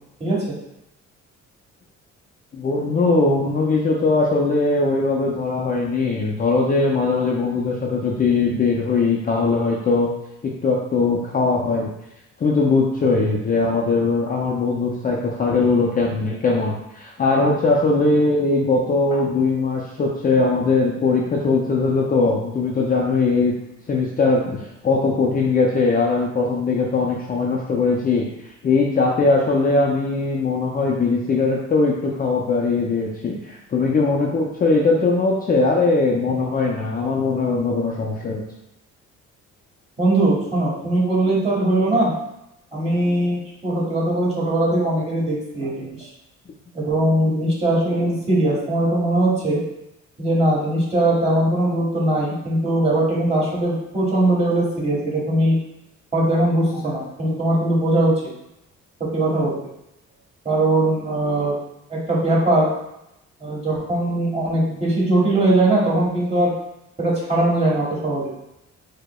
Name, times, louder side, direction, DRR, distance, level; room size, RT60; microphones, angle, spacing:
voice 1, 0.2-0.6 40.0-42.1 42.7-46.1 46.7-49.6 50.2-55.5 56.1-58.2 59.1-59.5 60.4-61.5 61.9-62.7 63.4-66.5 67.0-68.3, right 1 dB, 20° right, -6 dB, 1.4 m, -20 dB
voice 2, 2.5-10.1 10.4-11.9 12.4-23.5 23.9-28.3 28.6-38.4, left 3 dB, 30° left, -2 dB, 0.4 m, -20 dB
4.7 x 2.1 x 2.2 m, 0.86 s
cardioid pair, 90°, 30 cm